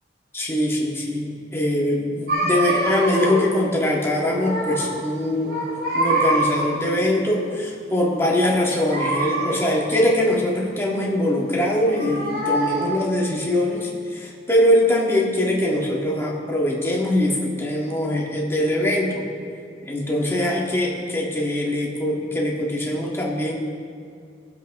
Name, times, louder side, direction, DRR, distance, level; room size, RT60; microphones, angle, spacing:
voice 1, 0.3-5.6 5.9-19.2 19.9-23.6, left 1 dB, 15° left, -3 dB, 1.9 m, -22 dB
sound 1, 2.3-3.6 3.9-5.0 5.3-6.9 8.8-10.0 11.6-13.1, right 1 dB, 60° right, 2.3 m, -25 dB
20.0 x 7.5 x 3.7 m, 2.4 s
head